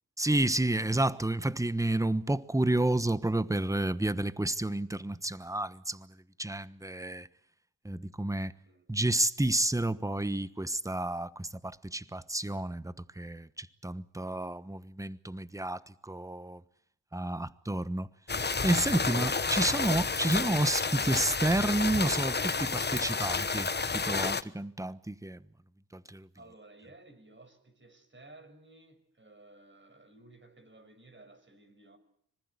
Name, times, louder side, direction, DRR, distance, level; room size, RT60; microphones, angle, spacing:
voice 1, 0.2-6.1 6.4-7.3 7.8-8.5 8.9-16.6 17.1-18.1 18.6-25.4 25.9-26.3, right 1 dB, 10° right, 1.2 m, -30 dB
voice 2, 8.6-8.9 26.3-32.0, right 2 dB, 25° right, 5.9 m, -55 dB
sound 1, 18.3-24.4, left 4 dB, 25° left, 1.1 m, -30 dB
26.0 x 20.0 x 8.3 m
cardioid pair, 60°, 42 cm